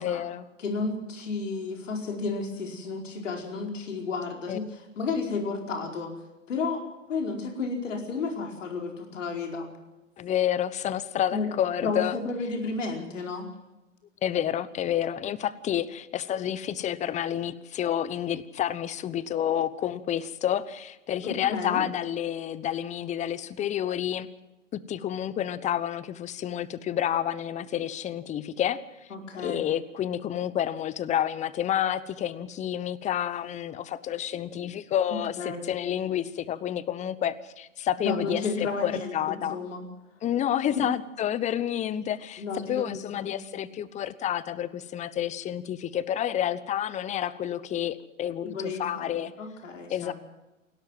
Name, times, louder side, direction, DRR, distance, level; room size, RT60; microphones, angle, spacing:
voice 1, 0.0-0.4 4.5-4.6 10.2-12.2 14.2-24.3 24.9-28.8 29.4-39.6 40.2-49.3 49.9-50.1, left 10 dB, 20° left, 18 dB, 1.0 m, -29 dB
voice 2, 0.6-6.1 6.5-6.8 7.1-9.7 11.3-11.5 11.8-13.5 21.2-21.8 29.1-29.7 35.3-35.7 38.0-39.8 40.7-40.8 42.4-43.4 48.4-50.1, left 4 dB, 70° left, 2 dB, 4.8 m, -32 dB
28.0 x 12.5 x 7.7 m, 1.0 s
hypercardioid pair, 115°, 39 cm